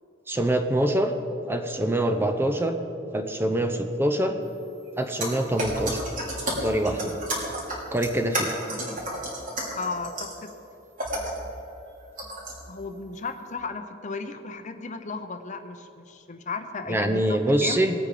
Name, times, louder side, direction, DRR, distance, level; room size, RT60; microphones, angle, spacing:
voice 1, 0.3-1.2 1.5-2.8 3.1-4.4 5.0-6.0 6.6-7.2 7.9-8.6 16.9-17.9, right 1 dB, 10° right, 6 dB, 0.7 m, -24 dB
sound 1, 5.2-10.5 11.0-11.4 12.2-12.6, right 1 dB, 45° right, 3.2 m, -32 dB
voice 2, 9.7-10.5 12.7-17.8, left 4 dB, 40° left, 8 dB, 0.8 m, -35 dB
19.5 x 8.7 x 5.0 m, 2.9 s
head